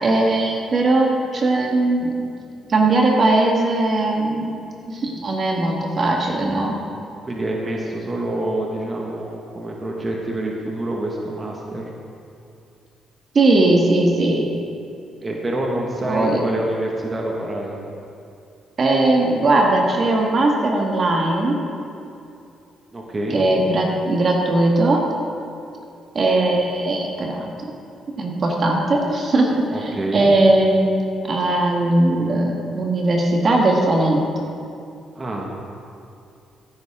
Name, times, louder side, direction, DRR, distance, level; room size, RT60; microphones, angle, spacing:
voice 1, 0.0-2.1 2.7-4.5 4.9-6.8 13.3-14.5 16.1-16.4 18.8-21.6 23.3-25.0 26.1-27.5 28.2-34.3, right 2 dB, 45° right, 0 dB, 1.7 m, -19 dB
voice 2, 7.2-11.9 15.2-17.8 22.9-23.4 29.7-30.3 35.1-35.5, right 1 dB, 30° right, -1 dB, 1.6 m, -27 dB
15.0 x 9.5 x 3.7 m, 2.6 s
cardioid pair, 90°, 0 cm